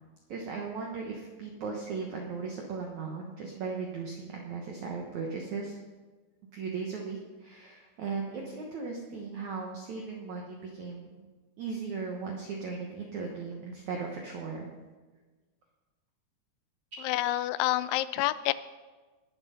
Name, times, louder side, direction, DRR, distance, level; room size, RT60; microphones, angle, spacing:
voice 1, 0.3-5.8 6.5-11.3 11.6-14.7, right 5 dB, 85° right, 0 dB, 1.6 m, -37 dB
voice 2, 17.0-18.5, left 16 dB, 85° left, 16 dB, 2.9 m, -28 dB
20.0 x 7.4 x 5.6 m, 1.3 s
omnidirectional pair, 5.3 m